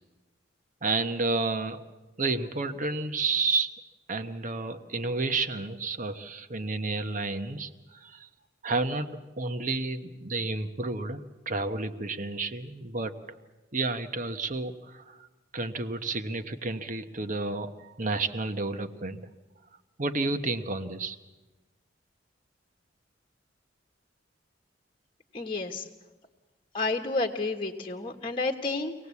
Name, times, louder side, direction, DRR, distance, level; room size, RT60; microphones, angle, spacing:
voice 1, 0.8-1.8 2.2-3.7 4.1-8.3 8.6-9.1 9.4-13.4 13.7-15.3 15.5-19.3 20.0-21.2, right 3 dB, 45° right, 9 dB, 1.2 m, -31 dB
voice 2, 25.3-25.9 26.7-28.9, left 3 dB, 30° left, 4 dB, 1.4 m, -30 dB
24.5 x 18.0 x 8.4 m, 1.2 s
head